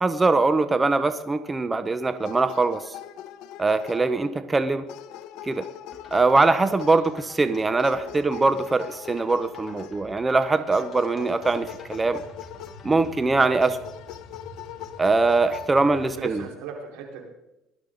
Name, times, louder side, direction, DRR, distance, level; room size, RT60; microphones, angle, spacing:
voice 1, 0.0-2.9 3.6-4.9 5.4-5.7 6.1-12.2 12.8-13.8 15.0-16.4, right 3 dB, 20° right, 11 dB, 0.7 m, -22 dB
sound 1, 2.2-4.5 4.9-7.2 7.8-10.1 10.7-13.2 13.6-15.7, left 12 dB, 75° left, 0.9 m, -41 dB
sound 2, 5.9-13.8, left 3 dB, 25° left, 3.4 m, -50 dB
voice 2, 8.0-8.5 11.1-11.4 15.8-17.3, right 6 dB, 90° right, 0 dB, 4.5 m, -39 dB
sound 3, 11.4-16.5, equal, 40° left, 3.5 m, -47 dB
18.5 x 12.5 x 3.9 m, 0.90 s
cardioid pair, 110°, 0 cm